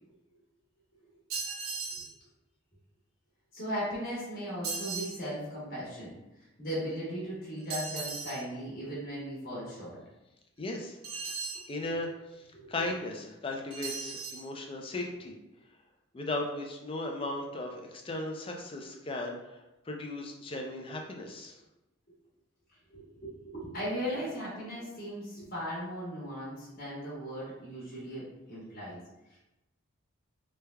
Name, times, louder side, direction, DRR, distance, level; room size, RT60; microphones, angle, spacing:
sound 1, 1.3-2.1 4.6-5.2 7.7-8.4 11.0-11.7 13.7-14.4, right 4 dB, 85° right, 0.6 m, -37 dB
voice 1, 3.5-6.1 6.6-10.0 11.8-11.9 12.5-12.7 22.9-29.0 29.3-29.4, equal, 40° left, -8 dB, 1.1 m, -37 dB
voice 2, 10.6-11.0 11.7-15.3 16.1-19.6 19.9-21.5, left 2 dB, 25° left, 1 dB, 0.4 m, -36 dB
3.2 x 2.2 x 3.3 m, 0.97 s
head